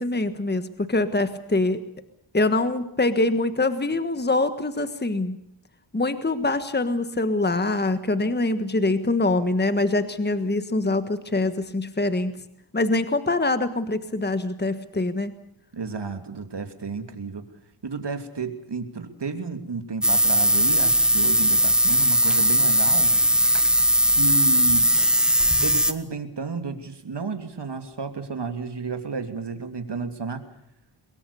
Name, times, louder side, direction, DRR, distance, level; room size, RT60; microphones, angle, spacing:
voice 1, 0.0-1.8 2.3-5.4 5.9-12.4 12.7-15.3, left 2 dB, 20° left, 11 dB, 1.5 m, -24 dB
voice 2, 15.7-17.5 17.8-23.1 24.1-24.9 25.6-30.4, right 4 dB, 55° right, 7 dB, 3.1 m, -32 dB
sound 1, 20.0-25.9, equal, ahead, 1.6 m, -19 dB
23.5 x 22.5 x 6.9 m, 0.76 s
cardioid pair, 65°, 49 cm